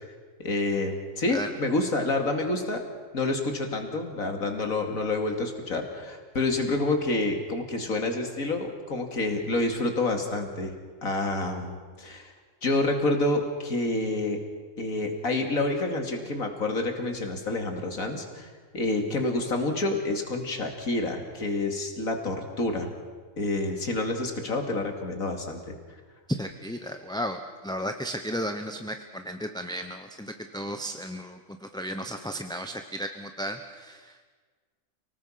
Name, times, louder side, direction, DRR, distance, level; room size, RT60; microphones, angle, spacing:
voice 1, 0.4-2.8 3.1-10.7 11.0-12.3 12.6-14.4 14.8-22.9 23.4-25.7, left 2 dB, 85° left, 4 dB, 3.0 m, -28 dB
voice 2, 26.3-34.3, equal, 5° left, 6 dB, 0.8 m, -34 dB
30.0 x 19.0 x 5.8 m, 1.5 s
omnidirectional pair, 1.4 m